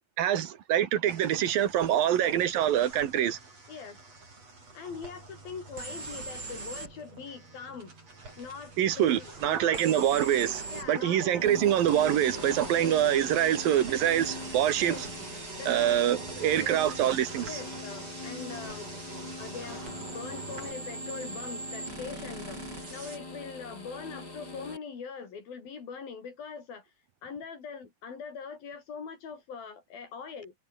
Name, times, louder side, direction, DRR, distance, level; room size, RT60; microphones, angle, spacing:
voice 1, 0.2-3.4 8.8-15.1 15.7-17.6, right 11 dB, 75° right, 3.6 m, -25 dB
sound 1, 1.1-20.7, right 3 dB, 45° right, 9.1 m, -45 dB
voice 2, 1.9-2.4 3.7-4.0 4.7-7.9 8.4-10.0 10.7-11.5 12.8-13.0 14.8-15.0 15.6-16.0 16.6-17.0 17.5-18.9 19.4-22.6 22.9-26.9 27.2-30.5, left 6 dB, 80° left, 6.4 m, -42 dB
sound 2, 5.8-6.9 9.7-10.9 11.9-17.2 19.9-23.2, right 3 dB, 30° right, 4.4 m, -43 dB
sound 3, 11.4-24.8, left 2 dB, 25° left, 6.9 m, -43 dB
omnidirectional pair, 4.1 m